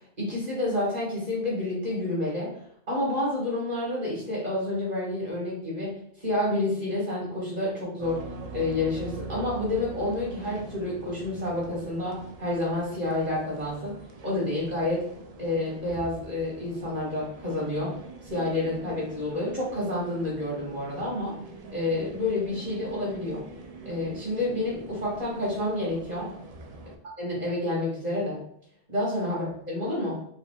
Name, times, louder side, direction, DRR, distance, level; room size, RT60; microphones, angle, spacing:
voice 1, 0.2-2.5 2.9-8.2 8.5-15.1 15.4-18.0 18.2-21.4 21.7-23.4 23.8-26.3 27.2-28.4 28.9-30.2, left 2 dB, 35° right, -5 dB, 1.8 m, -29 dB
sound 1, 8.0-27.0, right 3 dB, 70° right, 0.3 m, -43 dB
4.8 x 2.6 x 2.3 m, 0.66 s
omnidirectional pair, 1.2 m